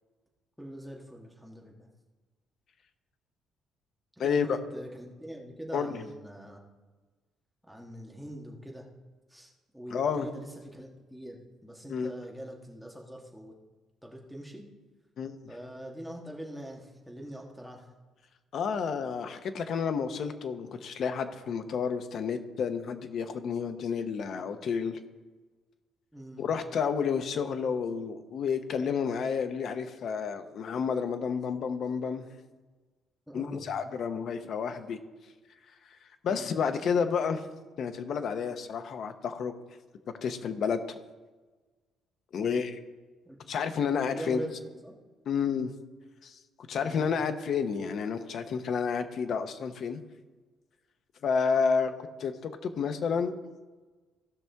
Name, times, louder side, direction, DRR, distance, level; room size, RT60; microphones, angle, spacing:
voice 1, 0.6-1.9 4.2-6.6 7.7-8.8 9.3-13.5 14.0-14.6 15.5-17.9 26.1-26.4 33.3-33.7 36.2-36.5 42.4-42.6 43.2-43.4 44.2-44.9 46.8-47.1, equal, ahead, -1 dB, 1.4 m, -43 dB
voice 2, 4.2-4.6 5.7-6.0 9.9-10.3 11.9-12.1 15.2-15.4 18.5-25.0 26.4-32.3 33.3-35.0 36.2-37.4 37.8-39.5 40.2-40.8 42.3-42.8 43.5-44.4 45.3-45.7 46.2-46.4 46.7-50.0 51.2-51.9 52.2-53.3, left 6 dB, 45° left, 8 dB, 0.8 m, -30 dB
16.5 x 6.0 x 3.4 m, 1.3 s
cardioid pair, 170°, 0 cm